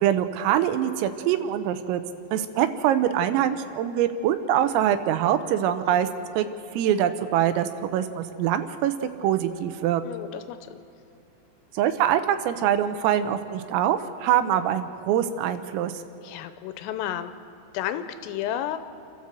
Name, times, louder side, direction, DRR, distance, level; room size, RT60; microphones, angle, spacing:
voice 1, 0.0-2.0 2.3-6.1 6.4-6.5 6.7-8.9 9.2-10.0 11.8-15.9, right 10 dB, 85° right, 10 dB, 3.6 m, -24 dB
voice 2, 10.1-10.8 16.2-17.3 17.7-18.8, left 11 dB, 85° left, 10 dB, 3.5 m, -32 dB
29.0 x 13.0 x 7.6 m, 2.6 s
omnidirectional pair, 5.9 m